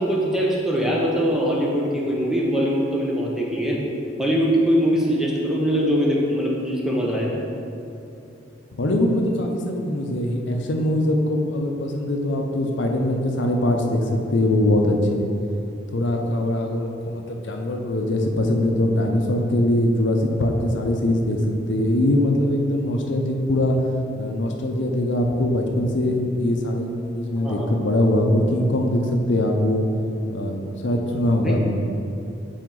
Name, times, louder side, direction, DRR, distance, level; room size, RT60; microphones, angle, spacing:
voice 1, 0.0-3.8 4.2-7.3 27.4-27.7 31.4-31.6, equal, ahead, -4 dB, 0.8 m, -22 dB
voice 2, 8.7-15.3 15.9-23.8 24.2-29.9 30.3-31.8, left 1 dB, 75° left, 2 dB, 0.6 m, -22 dB
7.6 x 4.3 x 3.8 m, 2.7 s
head